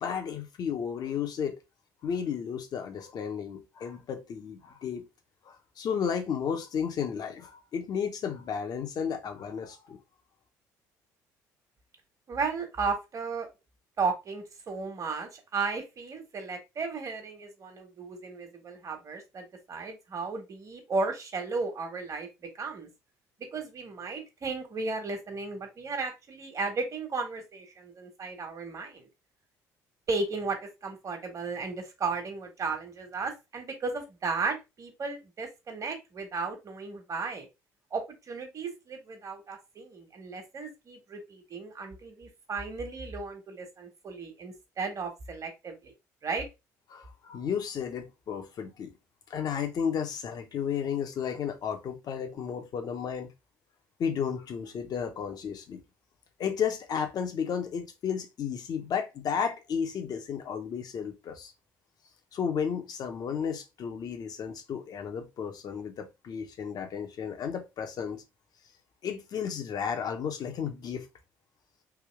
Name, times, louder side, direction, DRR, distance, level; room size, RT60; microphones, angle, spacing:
voice 1, 0.0-1.6 2.0-5.1 5.4-10.0 46.9-48.9 49.3-53.3 54.0-55.8 56.4-61.5 62.3-68.2 69.0-71.1, left 7 dB, 55° left, 1.0 m, -33 dB
voice 2, 12.3-13.5 14.0-22.3 22.6-22.9 23.5-29.1 30.1-30.6 30.8-37.5 37.9-45.9 46.2-46.4, right 4 dB, 45° right, 1.4 m, -34 dB
3.6 x 2.7 x 3.3 m
hypercardioid pair, 65°, 8 cm